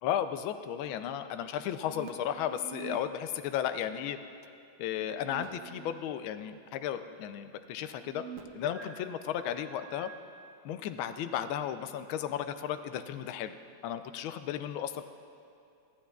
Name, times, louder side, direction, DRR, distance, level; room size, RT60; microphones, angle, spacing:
voice 1, 0.0-4.2 4.8-8.2 8.5-10.1 10.6-13.5 13.8-15.0, left 10 dB, 75° left, 10 dB, 1.3 m, -34 dB
sound 1, 1.7-3.0 5.1-6.0 6.4-6.5 7.9-10.2, right 7 dB, 85° right, 0.7 m, -47 dB
25.5 x 8.7 x 2.3 m, 2.6 s
omnidirectional pair, 2.4 m